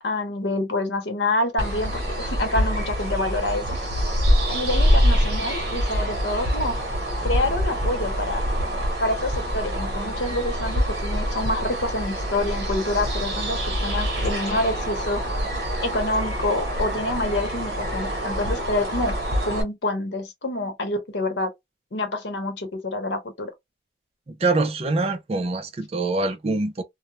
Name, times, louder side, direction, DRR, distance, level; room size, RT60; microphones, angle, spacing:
voice 1, 0.0-3.8 4.5-6.8 7.2-8.4 9.0-15.4 15.8-19.2 19.4-21.5 21.9-23.5, left 2 dB, 75° left, 0.9 m, -27 dB
sound 1, 1.6-19.6, equal, 60° right, 0.9 m, -25 dB
voice 2, 24.3-26.8, right 3 dB, 35° right, 0.4 m, -24 dB
2.3 x 2.0 x 2.9 m
head